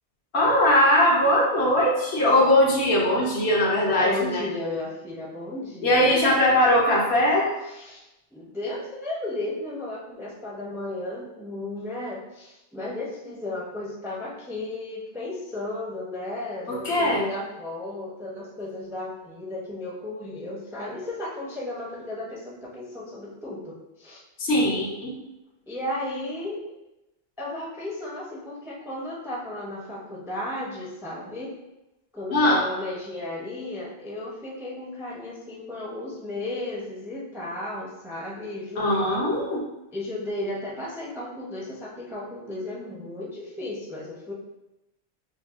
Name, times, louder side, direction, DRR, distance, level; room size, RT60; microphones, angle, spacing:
voice 1, 0.3-4.5 5.8-7.5 16.7-17.3 24.4-25.2 32.3-32.6 38.8-39.6, left 1 dB, 70° left, -3 dB, 1.1 m, -20 dB
voice 2, 3.8-6.3 7.7-8.0 8.3-24.2 25.7-26.6 27.4-31.5 32.1-39.2 39.9-44.3, left 2 dB, 5° right, -3 dB, 0.4 m, -34 dB
5.7 x 2.2 x 2.4 m, 0.95 s
omnidirectional pair, 1.1 m